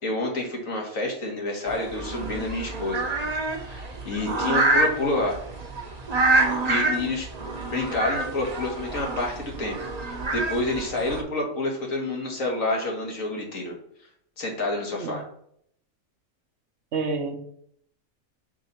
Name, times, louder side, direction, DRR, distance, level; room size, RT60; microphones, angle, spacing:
voice 1, 0.0-3.1 3.5-5.4 6.7-7.3 7.7-9.8 10.0-13.8 14.4-15.2, left 2 dB, 75° left, 0 dB, 2.0 m, -28 dB
sound 1, 1.7-11.2, right 2 dB, 35° right, 0.9 m, -27 dB
voice 2, 16.9-17.5, right 4 dB, 60° right, 6 dB, 1.0 m, -29 dB
6.1 x 4.0 x 5.7 m, 0.68 s
omnidirectional pair, 1.4 m